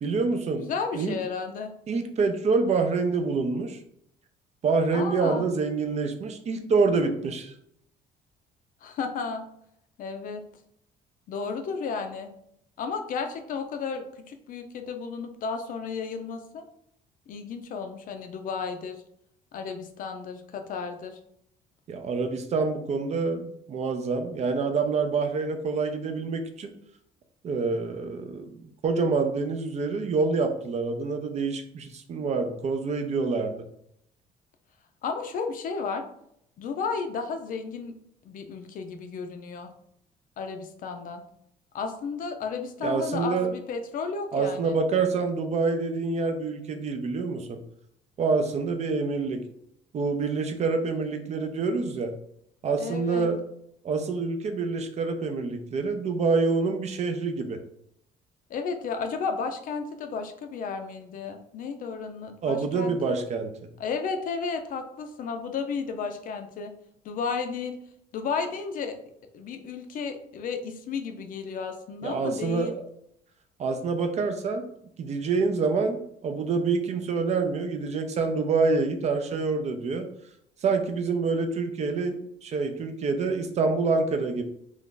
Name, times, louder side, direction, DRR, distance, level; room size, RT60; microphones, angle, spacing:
voice 1, 0.0-1.2 1.9-3.8 4.6-7.5 21.9-26.7 27.4-28.5 28.8-33.5 42.8-43.5 44.3-47.6 48.2-49.4 49.9-52.1 52.6-53.4 53.8-57.6 62.4-63.5 72.0-72.7 73.6-74.6 75.0-80.1 80.6-84.4, right 4 dB, 40° right, 6 dB, 0.5 m, -26 dB
voice 2, 0.6-1.7 4.9-5.5 8.8-9.4 10.0-10.5 11.3-12.3 12.8-16.6 17.3-19.0 19.5-21.2 35.0-36.0 36.6-38.0 38.2-39.7 40.4-41.2 41.7-44.8 52.8-53.3 58.5-63.2 63.8-66.7 67.0-67.8 68.1-69.0 69.3-72.7, left 5 dB, 55° left, 7 dB, 0.5 m, -33 dB
2.6 x 2.4 x 3.7 m, 0.72 s
cardioid pair, 110°, 17 cm